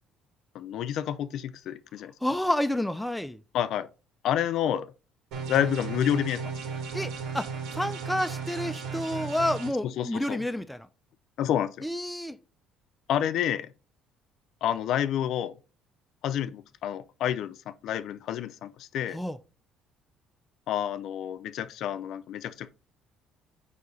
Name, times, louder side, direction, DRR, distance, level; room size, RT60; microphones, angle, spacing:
voice 1, 0.5-2.1 3.5-3.9 4.2-4.9 5.5-6.5 9.8-10.4 11.4-11.8 13.1-13.7 14.6-15.5 16.2-19.2 20.7-22.7, left 10 dB, 60° left, 0.5 m, -29 dB
voice 2, 2.2-3.4 6.9-7.5 7.7-10.9 11.8-12.4 19.1-19.4, left 1 dB, 5° left, 0.4 m, -29 dB
sound 1, 5.3-9.7, right 6 dB, 70° right, 2.0 m, -35 dB
8.2 x 2.8 x 4.8 m
cardioid pair, 150°, 0 cm